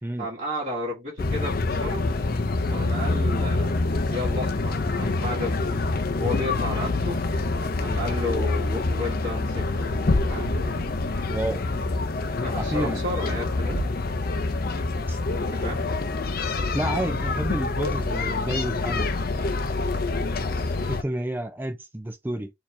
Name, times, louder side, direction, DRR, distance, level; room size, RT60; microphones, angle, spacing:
voice 1, 0.2-2.1 2.7-3.8 4.1-5.8 6.1-7.4 7.8-9.9 10.2-11.0 12.4-13.8 15.4-15.8, left 1 dB, 35° right, 1.8 m, -33 dB
sound 1, 1.2-21.0, left 3 dB, 45° left, 0.6 m, -26 dB
Thump thud, 10.3-10.9 13.6-14.2, right 4 dB, 90° right, 0.6 m, -37 dB
voice 2, 11.3-11.6 12.6-13.0 15.1-15.2 16.7-19.1 20.8-22.5, right 1 dB, 10° right, 0.5 m, -30 dB
4.6 x 2.9 x 3.4 m
head